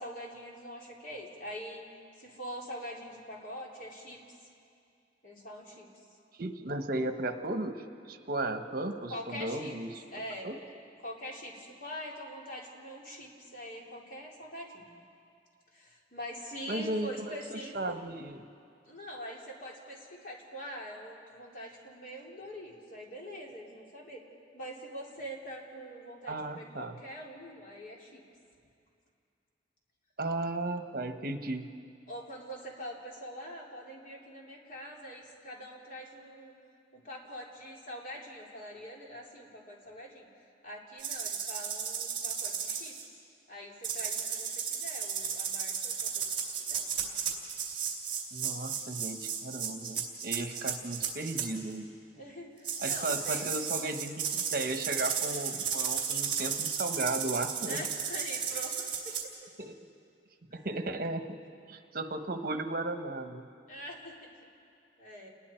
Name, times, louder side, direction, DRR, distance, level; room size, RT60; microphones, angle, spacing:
voice 1, 0.0-1.8 2.2-4.2 5.2-5.9 9.1-9.8 10.1-10.5 11.0-14.9 15.7-18.0 18.9-24.2 24.5-28.2 32.1-36.5 36.9-40.3 40.6-42.9 43.5-46.3 46.7-46.8 52.1-53.6 57.6-59.2 60.5-60.7 63.7-64.2 65.0-65.3, equal, 50° left, -2 dB, 3.3 m, -44 dB
voice 2, 6.4-10.0 10.4-10.6 16.7-18.5 26.3-27.0 30.2-31.7 48.3-51.9 52.8-57.8 59.6-59.7 60.5-61.2 61.7-63.5, right 2 dB, 55° right, 7 dB, 1.2 m, -35 dB
sound 1, 41.0-43.0 43.8-51.5 52.6-59.2, right 7 dB, 30° right, 3.2 m, -34 dB
29.5 x 20.0 x 4.5 m, 2.4 s
head